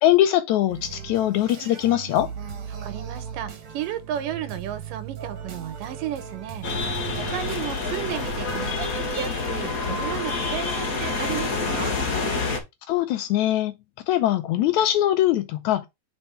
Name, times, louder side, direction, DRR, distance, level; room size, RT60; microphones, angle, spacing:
voice 1, 0.0-2.3 12.9-13.7 14.1-15.9, left 13 dB, 80° left, 1.8 m, -21 dB
sound 1, 0.7-8.9, right 7 dB, 55° right, 2.0 m, -38 dB
voice 2, 2.8-11.9, right 11 dB, 85° right, 2.6 m, -34 dB
sound 2, 6.6-12.6, left 3 dB, 45° left, 1.2 m, -27 dB
4.4 x 4.3 x 5.5 m
omnidirectional pair, 3.7 m